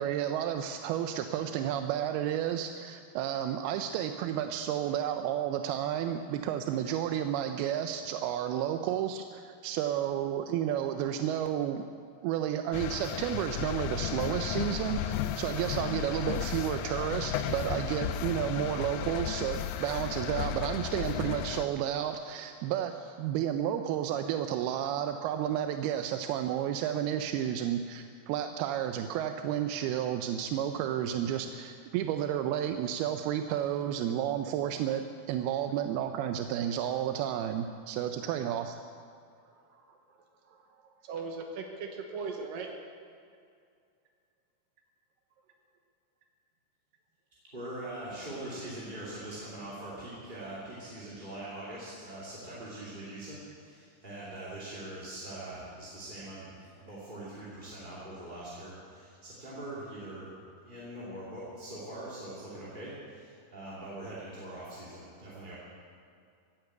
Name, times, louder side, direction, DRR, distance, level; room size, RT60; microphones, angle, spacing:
voice 1, 0.0-11.9 12.2-22.9 23.2-38.8, right 10 dB, 90° right, 7 dB, 2.6 m, -31 dB
sound 1, 12.7-21.7, left 10 dB, 80° left, 2.1 m, -34 dB
voice 2, 40.5-41.7 42.1-42.7, right 4 dB, 70° right, 3 dB, 2.6 m, -39 dB
voice 3, 47.5-60.3 60.6-65.5, right 1 dB, 15° right, -8 dB, 2.2 m, -42 dB
15.5 x 9.6 x 8.0 m, 2.3 s
omnidirectional pair, 4.4 m